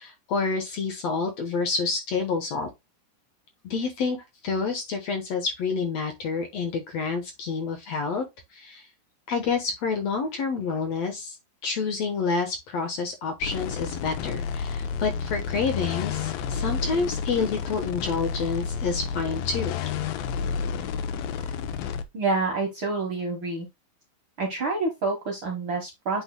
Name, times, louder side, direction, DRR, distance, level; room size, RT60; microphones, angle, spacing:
voice 1, 0.0-2.7 3.6-4.2 4.4-8.2 8.5-8.9 9.3-11.4 11.6-19.8, left 4 dB, 65° left, 1.9 m, -28 dB
sound 1, 13.4-22.0, left 6 dB, 90° left, 2.6 m, -30 dB
voice 2, 22.1-23.7 24.4-26.2, right 3 dB, 50° right, 1.5 m, -27 dB
8.2 x 5.6 x 2.2 m
omnidirectional pair, 4.0 m